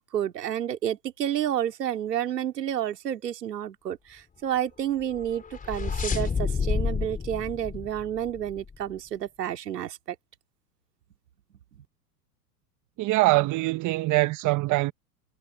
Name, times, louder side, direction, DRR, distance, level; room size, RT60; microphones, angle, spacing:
voice 1, 0.0-10.2, right 10 dB, 85° right, 2.6 m, -30 dB
sound 1, 5.1-8.8, left 5 dB, 15° left, 3.5 m, -30 dB
voice 2, 13.0-14.9, right 20 dB, 40° right, 1.4 m, -23 dB
hypercardioid pair, 110°, 47 cm